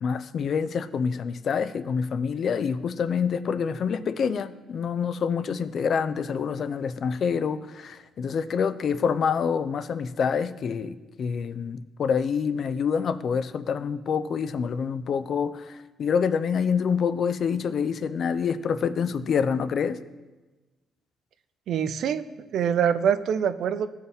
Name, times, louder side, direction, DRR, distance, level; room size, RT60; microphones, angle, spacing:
voice 1, 0.0-20.0, left 6 dB, 55° left, 0.4 m, -27 dB
voice 2, 21.7-22.3 22.5-23.9, right 8 dB, 70° right, 0.4 m, -24 dB
13.5 x 4.6 x 3.4 m
cardioid pair, 90°, 0 cm